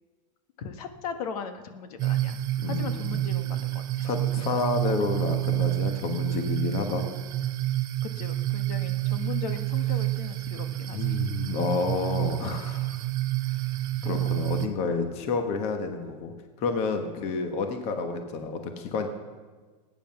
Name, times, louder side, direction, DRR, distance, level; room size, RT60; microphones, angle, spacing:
voice 1, 0.6-2.4 2.7-4.1 8.0-11.2, left 6 dB, 65° left, 8 dB, 1.3 m, -38 dB
sound 1, 2.0-14.7, right 15 dB, 20° right, 0.6 m, -29 dB
voice 2, 2.6-3.2 4.0-7.1 10.9-12.9 14.0-19.1, left 4 dB, 30° left, 6 dB, 1.2 m, -30 dB
20.5 x 9.4 x 5.8 m, 1.4 s
supercardioid pair, 175°, 21 cm